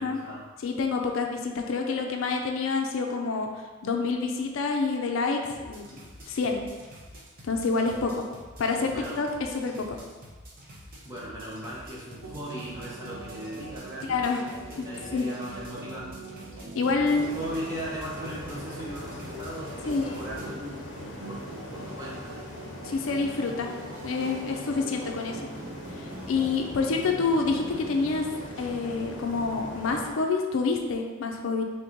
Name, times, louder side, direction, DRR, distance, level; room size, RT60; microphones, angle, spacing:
voice 1, 0.0-0.4 8.9-9.2 11.0-16.3 16.9-20.8 21.3-21.4 21.7-22.3, right 1 dB, 15° right, -7 dB, 0.9 m, -38 dB
voice 2, 0.6-3.5 3.8-5.8 6.3-6.7 7.4-8.2 8.6-9.3 9.5-10.0 14.1-14.4 14.8-14.9 15.1-15.3 16.7-17.3 19.9-20.2 22.8-23.7 24.0-25.4 26.0-28.3 28.6-31.6, left 4 dB, 70° left, 3 dB, 0.4 m, -27 dB
sound 1, 5.5-20.5, equal, 40° right, 0.7 m, -48 dB
sound 2, 12.2-29.7, right 2 dB, 80° right, 0.6 m, -43 dB
sound 3, 17.1-30.1, left 1 dB, 55° left, 0.8 m, -41 dB
3.3 x 3.0 x 3.8 m, 1.3 s
head